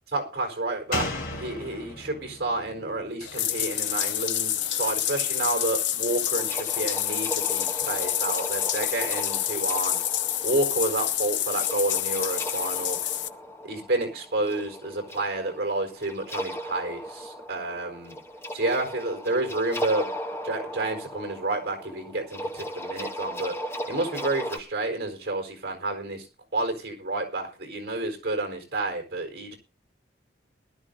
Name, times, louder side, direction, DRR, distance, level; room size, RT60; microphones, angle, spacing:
voice 1, 0.1-10.0 10.4-13.0 13.6-18.2 18.5-20.1 20.4-23.5 23.9-26.3 26.5-29.6, right 2 dB, 55° right, 3 dB, 4.4 m, -30 dB
Slam, 0.9-4.4 4.7-4.8, left 2 dB, 50° left, 3.0 m, -36 dB
Bathtub (filling or washing), 3.2-13.3, left 11 dB, 80° left, 0.8 m, -28 dB
sound 1, 6.3-24.6, equal, 15° left, 1.1 m, -37 dB
20.5 x 12.0 x 2.7 m, 0.32 s
head